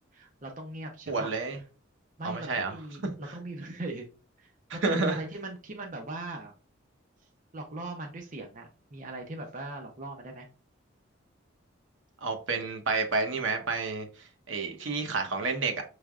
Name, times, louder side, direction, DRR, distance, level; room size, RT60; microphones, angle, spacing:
voice 1, 0.1-1.3 2.2-4.1 4.4-6.5 7.5-10.5, right 2 dB, 40° right, 0.6 m, -40 dB
voice 2, 1.1-1.6 2.2-2.7 3.0-3.1 4.8-5.2 12.2-15.8, right 3 dB, 70° right, 0.9 m, -30 dB
6.2 x 3.3 x 2.4 m
head